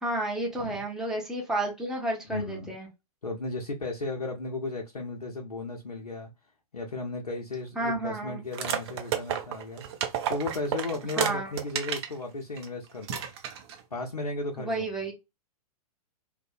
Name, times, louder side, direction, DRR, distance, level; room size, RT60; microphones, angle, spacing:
voice 1, 0.0-2.9 7.8-8.4 11.2-11.5 14.6-15.1, right 2 dB, 5° right, 0.7 m, -31 dB
voice 2, 2.3-2.7 3.2-6.3 6.7-9.8 10.3-13.2 13.9-14.9, left 2 dB, 90° left, 0.5 m, -35 dB
sound 1, 8.5-12.1 12.6-12.7 13.0-13.8, right 9 dB, 45° right, 0.5 m, -31 dB
2.6 x 2.1 x 2.4 m
figure-of-eight pair, 110°, 19 cm